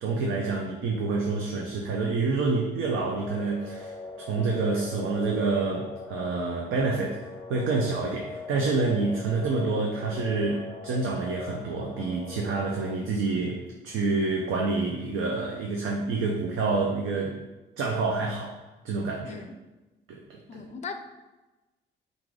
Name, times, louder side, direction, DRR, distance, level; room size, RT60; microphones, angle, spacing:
voice 1, 0.0-17.4 17.8-18.6 18.8-19.4 20.1-20.2 20.5-20.6, right 3 dB, 85° right, 0 dB, 0.6 m, -28 dB
sound 1, 2.8-12.9, left 3 dB, 5° left, 0.7 m, -41 dB
voice 2, 20.5-21.0, left 5 dB, 35° left, 7 dB, 0.4 m, -38 dB
4.6 x 2.6 x 3.7 m, 1.1 s
cardioid pair, 90°, 20 cm